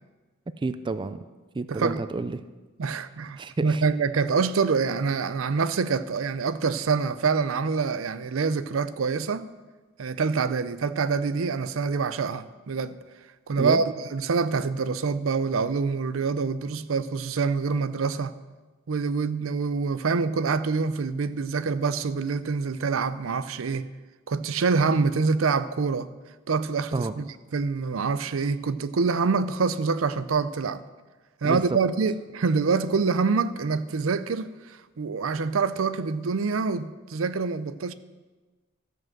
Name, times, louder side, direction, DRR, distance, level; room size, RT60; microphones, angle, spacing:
voice 1, 0.6-1.2 1.5-2.4 3.4-3.8 13.6-13.9 26.9-27.1 31.4-31.8, right 3 dB, 25° right, 0.3 m, -30 dB
voice 2, 1.7-2.0 2.8-9.5 10.0-13.0 13.5-13.8 14.1-18.3 18.9-23.9 24.3-26.1 26.5-30.8 31.4-37.9, right 4 dB, 85° right, 0.5 m, -26 dB
13.5 x 5.4 x 7.3 m
head